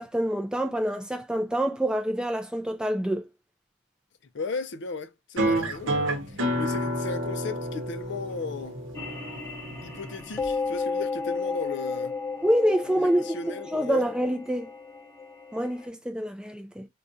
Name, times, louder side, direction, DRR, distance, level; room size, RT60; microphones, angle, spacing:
voice 1, 0.0-3.3 12.4-13.4 13.7-14.7 15.5-16.9, equal, 5° right, 0.3 m, -26 dB
voice 2, 4.3-8.8 9.8-12.1 12.9-14.1, left 4 dB, 55° left, 0.4 m, -36 dB
sound 1, 5.4-10.4, right 1 dB, 60° right, 0.9 m, -29 dB
sound 2, 8.9-15.9, left 4 dB, 10° left, 0.7 m, -33 dB
4.8 x 2.3 x 2.6 m
head